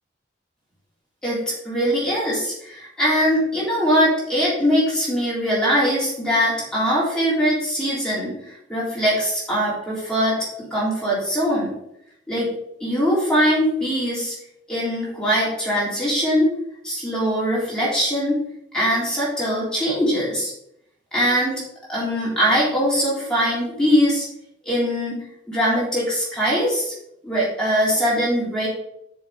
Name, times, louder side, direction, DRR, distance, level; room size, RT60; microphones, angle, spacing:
voice 1, 1.2-10.4 10.7-11.7 12.3-12.5 12.8-14.4 14.7-16.5 16.8-18.4 18.7-20.5 21.1-21.6 21.9-24.3 24.7-26.9 27.2-28.7, equal, 5° left, -8 dB, 3.6 m, -21 dB
7.7 x 6.4 x 4.8 m, 0.77 s
head